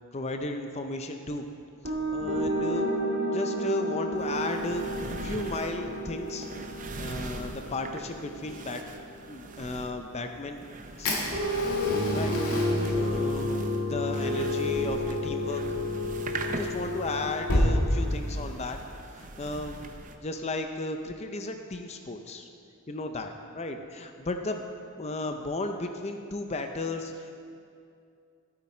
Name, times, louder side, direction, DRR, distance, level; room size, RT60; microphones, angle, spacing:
voice 1, 0.1-1.5 1.8-2.9 3.3-4.8 5.2-6.5 7.0-8.8 9.3-10.6 11.0-11.1 12.1-12.4 12.9-15.6 16.6-18.8 19.2-19.9 20.2-22.5 22.9-24.7 25.0-27.3, left 2 dB, 30° left, 5 dB, 0.5 m, -34 dB
sound 1, 1.8-10.0 11.3-18.0, left 1 dB, 50° right, 2.0 m, -31 dB
sound 2, 4.2-20.1, right 3 dB, 35° right, 0.6 m, -42 dB
Fire, 11.0-17.7, left 1 dB, 85° left, 2.0 m, -33 dB
14.0 x 8.4 x 4.3 m, 2.5 s
head